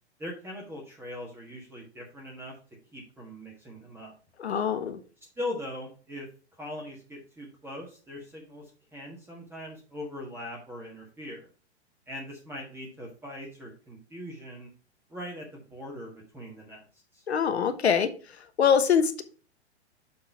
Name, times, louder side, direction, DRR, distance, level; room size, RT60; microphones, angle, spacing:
voice 1, 0.2-2.5 2.9-4.2 5.4-6.3 6.5-11.5 12.1-14.7 15.1-16.9 17.1-17.2, left 1 dB, 5° right, -2 dB, 1.4 m, -40 dB
voice 2, 4.4-5.0 17.3-18.1 18.6-19.2, left 7 dB, 70° left, 10 dB, 1.1 m, -23 dB
6.9 x 3.7 x 5.7 m, 0.38 s
figure-of-eight pair, 110°, 34 cm